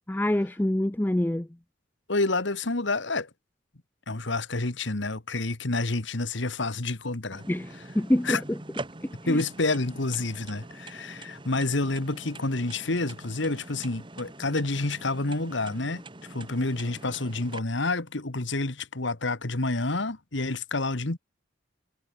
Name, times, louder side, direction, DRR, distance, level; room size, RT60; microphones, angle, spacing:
voice 1, 0.1-1.5 7.5-8.6 9.0-9.4, left 1 dB, 10° left, 0.4 m, -26 dB
voice 2, 2.1-3.3 4.1-7.4 8.2-8.4 9.3-16.0 16.3-21.2, left 2 dB, 65° left, 1.7 m, -28 dB
sound 1, 7.3-17.6, right 2 dB, 25° right, 1.4 m, -44 dB
head